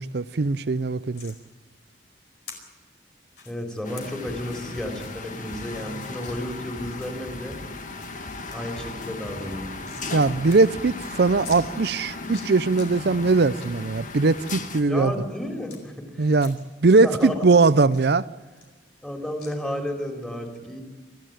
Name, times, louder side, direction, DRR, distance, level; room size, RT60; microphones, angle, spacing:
voice 1, 0.0-1.3 10.1-15.1 16.2-18.3, right 3 dB, 60° right, 0.6 m, -20 dB
sound 1, 1.1-1.4 2.5-2.6 3.3-3.5 4.0-4.1 4.5-4.7 5.1-5.2 5.4-5.5 6.2-6.3 6.9-7.4 7.8-8.2 8.5-8.6 8.9-10.2 10.5-10.6 10.9-11.0 11.4-11.6 12.1-12.9 13.2-13.7 14.1-15.8 16.4-16.9 17.2-19.1 19.4-19.5, left 6 dB, 65° left, 4.7 m, -45 dB
voice 2, 3.4-7.6 8.5-9.7 14.9-16.3 17.0-17.4 19.0-20.8, left 1 dB, 5° left, 3.4 m, -32 dB
sound 2, 3.8-11.6, left 1 dB, 80° left, 5.3 m, -44 dB
sound 3, 3.8-14.8, left 3 dB, 45° left, 1.8 m, -36 dB
25.0 x 14.5 x 9.2 m
head